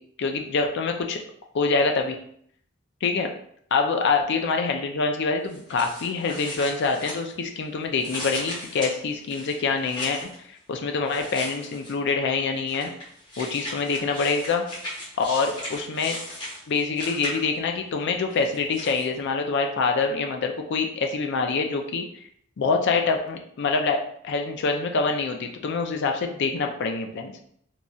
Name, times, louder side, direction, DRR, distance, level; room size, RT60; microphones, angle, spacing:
voice 1, 0.2-1.2 1.5-2.2 3.0-3.3 3.7-10.3 10.7-12.9 13.4-14.6 15.2-16.2 16.7-22.0 22.6-27.3, left 4 dB, 60° left, 4 dB, 0.4 m, -25 dB
sound 1, 5.5-7.6 8.0-10.4 11.1-12.1 12.7-17.7 18.3-19.1, left 1 dB, 20° left, 1.1 m, -37 dB
3.0 x 2.6 x 2.3 m, 0.65 s
head